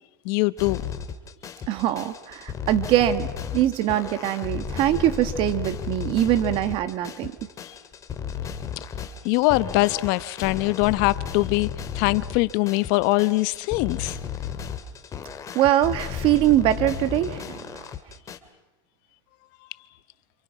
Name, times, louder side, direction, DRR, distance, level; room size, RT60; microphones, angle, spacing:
voice 1, 0.2-0.8 9.2-11.7 11.9-14.2, left 21 dB, 55° left, 1.1 m, -22 dB
sound 1, 0.6-18.4, left 7 dB, 25° left, 2.5 m, -34 dB
voice 2, 1.7-3.3 3.5-7.3 15.5-17.9, right 13 dB, 45° right, 1.6 m, -23 dB
29.5 x 28.0 x 6.0 m
supercardioid pair, 125°, 13 cm